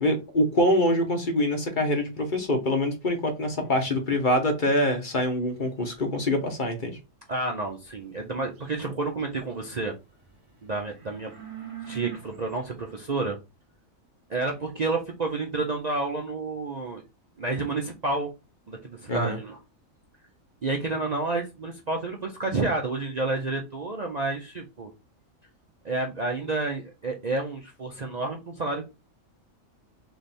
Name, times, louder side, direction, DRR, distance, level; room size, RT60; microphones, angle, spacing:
voice 1, 0.0-7.0 19.1-19.4, left 1 dB, 40° left, 1.0 m, -25 dB
voice 2, 7.3-10.0 10.6-11.3 11.9-13.4 14.3-17.0 17.4-18.3 18.7-19.6 20.6-24.9 25.8-28.9, right 3 dB, 45° right, 0.6 m, -30 dB
sound 1, 7.7-9.8 10.1-13.0, right 10 dB, 25° right, 1.1 m, -43 dB
3.4 x 3.3 x 4.1 m
omnidirectional pair, 1.4 m